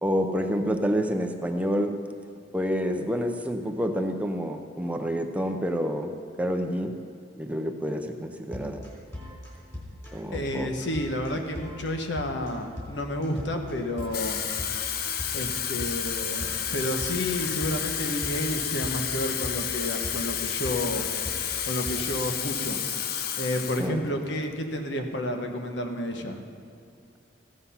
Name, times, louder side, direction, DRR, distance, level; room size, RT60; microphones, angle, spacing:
voice 1, 0.0-1.9 2.5-6.1 6.4-6.9 7.4-8.8 10.1-10.7 23.8-24.1, equal, 10° right, 5 dB, 0.6 m, -28 dB
sound 1, 8.5-21.9, left 1 dB, 20° left, 3.6 m, -40 dB
voice 2, 10.3-14.4 15.3-21.1 21.6-22.8 23.4-26.4, left 1 dB, 75° left, 4 dB, 1.2 m, -30 dB
Water tap faucet / Fill (with liquid), 14.0-23.9 24.3-24.5, left 8 dB, 55° left, 0.6 m, -31 dB
15.5 x 7.9 x 5.7 m, 2.4 s
head